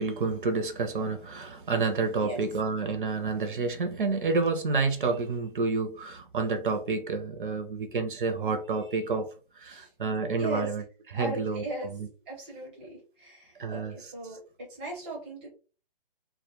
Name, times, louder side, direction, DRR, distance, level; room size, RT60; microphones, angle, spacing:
voice 1, 0.0-10.8 11.1-12.1 13.6-14.1, right 4 dB, 60° right, 0.5 m, -29 dB
voice 2, 10.4-10.7 11.1-11.9 12.3-15.5, right 2 dB, 10° right, 0.6 m, -38 dB
2.1 x 2.1 x 2.9 m
hypercardioid pair, 165°, 29 cm